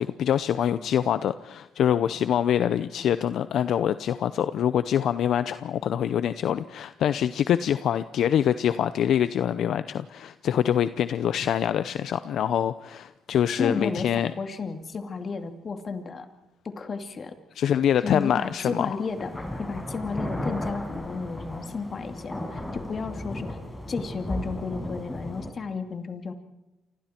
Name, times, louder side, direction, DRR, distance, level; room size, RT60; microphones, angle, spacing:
voice 1, 0.0-14.3 17.6-19.0, left 9 dB, 70° left, 13 dB, 0.7 m, -25 dB
voice 2, 13.6-16.3 16.6-17.4 18.0-23.6 23.9-26.3, left 4 dB, 45° left, 7 dB, 2.5 m, -33 dB
sound 1, 18.2-18.3 19.1-25.5, left 1 dB, 15° left, 6.0 m, -35 dB
29.5 x 25.0 x 4.5 m, 1.0 s
cardioid pair, 90°, 0 cm